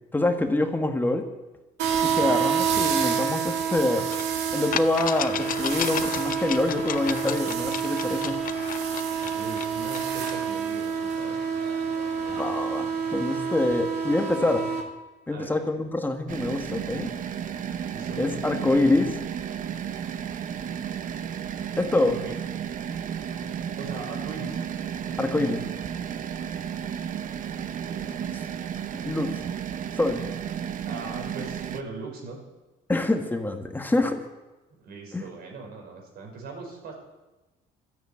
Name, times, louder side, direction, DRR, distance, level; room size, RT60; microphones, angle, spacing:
voice 1, 0.1-1.3 2.0-4.1 4.5-8.4 12.3-14.7 15.3-17.1 18.2-19.2 21.8-22.2 25.2-25.6 28.9-29.4 30.0-30.2 32.9-34.2 35.1-35.3, left 2 dB, 10° left, 5 dB, 1.5 m, -25 dB
sound 1, 1.8-14.8, right 7 dB, 90° right, 2.3 m, -28 dB
sound 2, 4.1-4.2 4.7-10.4, left 10 dB, 55° left, 0.8 m, -33 dB
voice 2, 9.2-11.5 15.3-15.8 17.9-18.2 22.2-22.3 23.4-24.6 27.8-28.6 30.9-32.4 34.8-36.9, right 3 dB, 65° right, 2 dB, 5.5 m, -40 dB
sound 3, 16.3-31.8, right 8 dB, 50° right, 0.9 m, -33 dB
13.0 x 10.0 x 8.7 m, 1.1 s
cardioid pair, 110°, 17 cm